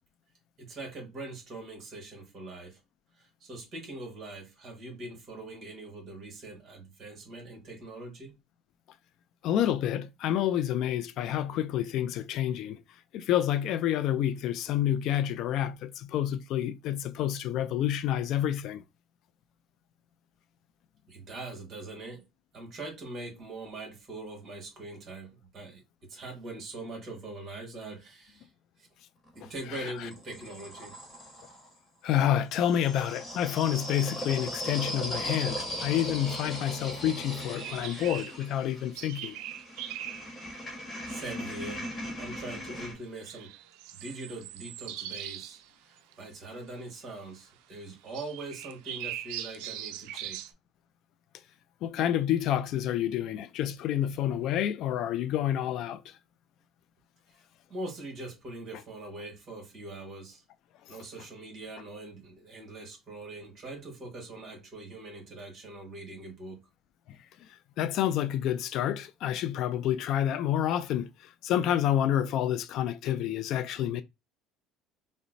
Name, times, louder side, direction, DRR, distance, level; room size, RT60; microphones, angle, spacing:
voice 1, 0.6-2.8 3.2-8.3 21.1-22.2 22.5-28.5 29.3-31.0 41.1-41.9 42.1-43.5 43.9-45.6 45.9-50.4 57.7-60.4 60.9-66.6, right 2 dB, 40° right, 1.4 m, -42 dB
voice 2, 9.4-12.8 13.1-18.8 29.4-30.1 32.0-39.4 51.8-56.2 60.9-61.0 67.1-67.2 67.8-74.0, left 11 dB, 55° left, 0.3 m, -29 dB
sound 1, 29.3-31.7 32.5-42.9, equal, 15° left, 1.3 m, -38 dB
sound 2, 37.2-37.3 37.5-38.4 38.9-40.3 40.9-41.3 41.6-41.9 42.4-42.7 43.2-45.7 46.0-46.1 47.0-47.1 48.1-50.5, right 12 dB, 80° right, 0.3 m, -41 dB
3.9 x 2.1 x 2.6 m
cardioid pair, 140°, 0 cm